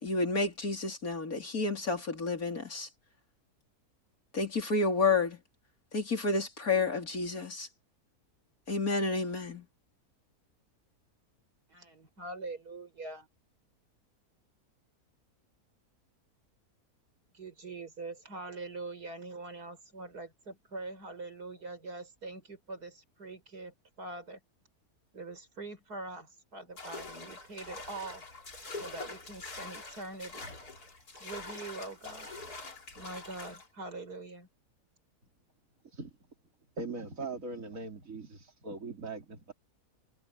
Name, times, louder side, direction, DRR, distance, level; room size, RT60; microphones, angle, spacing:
voice 1, 0.0-2.9 4.3-5.4 5.9-7.7 8.7-9.7, left 3 dB, 65° left, 4.5 m, -30 dB
voice 2, 11.7-13.3 17.3-24.4 25.1-28.2 28.8-30.5 31.2-32.3 33.0-34.5, right 2 dB, 85° right, 5.9 m, -43 dB
sound 1, 26.8-33.7, left 3 dB, 80° left, 4.3 m, -45 dB
voice 3, 36.8-39.5, right 3 dB, 60° right, 3.3 m, -40 dB
omnidirectional pair, 1.6 m